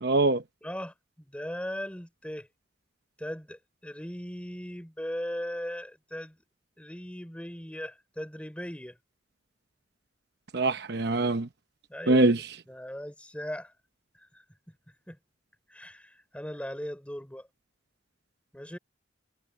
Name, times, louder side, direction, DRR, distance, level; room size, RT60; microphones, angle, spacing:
voice 1, 0.0-0.4 10.5-11.5 12.1-12.4, right 2 dB, 60° right, 0.9 m, -23 dB
voice 2, 0.6-2.5 3.2-6.4 6.8-9.0 11.9-13.7 14.3-14.4 15.1-15.2 15.7-17.5 18.5-18.8, equal, 5° left, 3.8 m, -38 dB
head